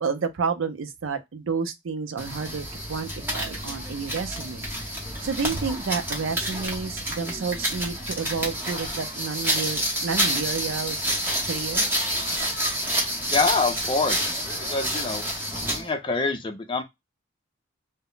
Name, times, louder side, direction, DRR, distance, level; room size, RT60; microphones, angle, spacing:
voice 1, 0.0-4.7 5.2-11.0 11.5-12.0, right 5 dB, 80° right, 0.5 m, -30 dB
sound 1, 2.2-15.9, equal, 10° right, 0.8 m, -28 dB
voice 2, 13.3-15.2 15.6-16.8, left 3 dB, 25° left, 0.4 m, -26 dB
2.1 x 2.1 x 3.7 m
head